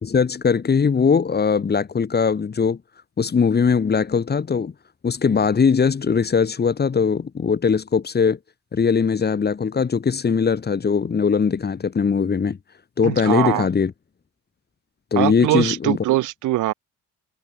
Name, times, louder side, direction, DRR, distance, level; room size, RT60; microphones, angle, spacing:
voice 1, 0.0-2.8 3.2-4.7 5.0-8.4 8.7-12.6 13.0-13.9 15.1-16.0, left 6 dB, 35° left, 1.6 m, -20 dB
voice 2, 13.0-13.7 15.2-16.7, right 16 dB, 85° right, 1.4 m, -22 dB
cardioid pair, 90°, 30 cm